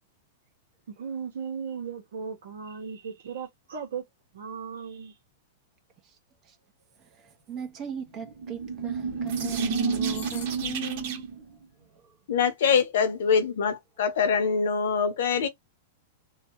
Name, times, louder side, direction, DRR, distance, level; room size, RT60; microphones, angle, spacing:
voice 1, 0.9-4.0 4.3-5.2, right 6 dB, 80° right, 1.0 m, -36 dB
voice 2, 7.0-11.3 11.9-12.2, right 7 dB, 30° right, 0.8 m, -38 dB
sound 1, 8.2-11.4, right 5 dB, 55° right, 1.2 m, -30 dB
voice 3, 12.3-15.5, left 6 dB, 75° left, 0.9 m, -24 dB
2.8 x 2.3 x 2.9 m
hypercardioid pair, 140°, 0 cm